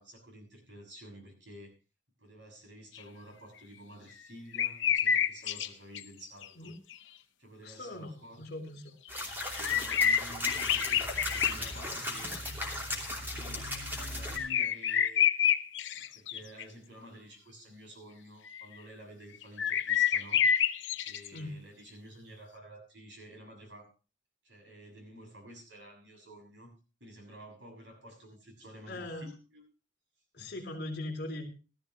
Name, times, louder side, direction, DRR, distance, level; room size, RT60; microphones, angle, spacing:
voice 1, 0.0-1.7 2.2-6.7 7.4-8.4 9.4-12.3 13.3-15.2 15.9-20.5 21.0-23.9 24.4-26.7 27.0-29.6 30.4-30.5, equal, 65° right, 3 dB, 6.7 m, -51 dB
sound 1, 3.0-3.1 4.5-5.7 5.9-6.0 6.4-6.5 6.9-7.0 9.2-11.8 12.2-12.3 14.4-16.6 18.5-18.6 19.4-21.4, left 8 dB, 75° left, 0.8 m, -28 dB
voice 2, 7.6-9.0 21.3-21.6 28.9-29.3 30.3-31.5, left 1 dB, 55° left, 4 dB, 3.6 m, -40 dB
sound 2, 9.1-14.4, left 1 dB, 10° right, 2.8 m, -37 dB
18.0 x 13.0 x 3.0 m, 0.32 s
head